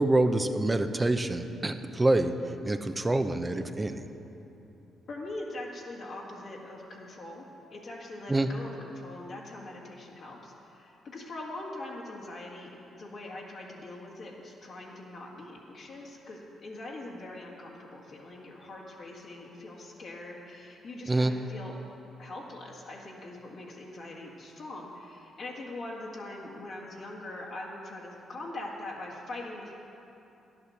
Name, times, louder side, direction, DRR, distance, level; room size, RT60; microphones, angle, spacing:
voice 1, 0.0-2.3 2.7-4.0 8.3-8.5 21.1-21.3, right 2 dB, 20° right, 8 dB, 0.7 m, -26 dB
voice 2, 5.1-21.8 22.2-29.7, left 2 dB, 60° left, -4 dB, 1.8 m, -42 dB
10.5 x 8.6 x 6.6 m, 2.9 s
supercardioid pair, 55°, 0 cm